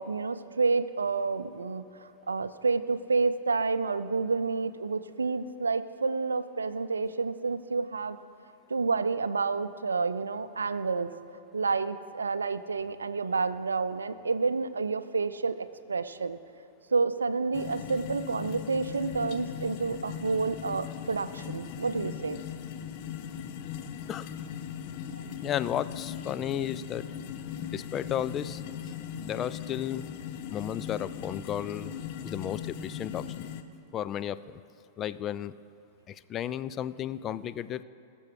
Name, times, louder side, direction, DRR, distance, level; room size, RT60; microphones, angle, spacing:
voice 1, 0.0-8.2 8.7-11.1 11.5-16.4 16.9-22.4 25.2-25.3, right 4 dB, 75° right, 13 dB, 0.4 m, -29 dB
sound 1, 17.5-33.6, left 8 dB, 45° left, 0.7 m, -39 dB
voice 2, 25.4-27.0 27.6-28.9 29.2-30.0 30.5-31.9 32.2-33.5 33.9-34.6 35.0-35.5 36.1-37.8, left 10 dB, 30° left, 15 dB, 0.3 m, -33 dB
19.5 x 7.0 x 4.7 m, 2.8 s
figure-of-eight pair, 95°, 0 cm